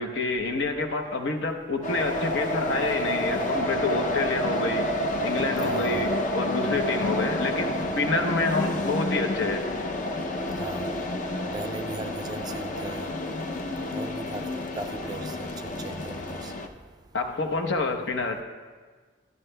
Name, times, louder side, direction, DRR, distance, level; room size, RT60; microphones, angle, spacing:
voice 1, 0.0-4.9 5.2-9.6 17.1-18.4, left 3 dB, 80° left, 0.8 m, -28 dB
sound 1, 1.8-16.7, left 1 dB, 45° left, 0.5 m, -29 dB
voice 2, 5.6-6.1 10.6-10.9 11.5-13.1 13.9-14.5 14.8-16.5, right 2 dB, 20° right, 0.3 m, -38 dB
11.0 x 10.5 x 2.2 m
head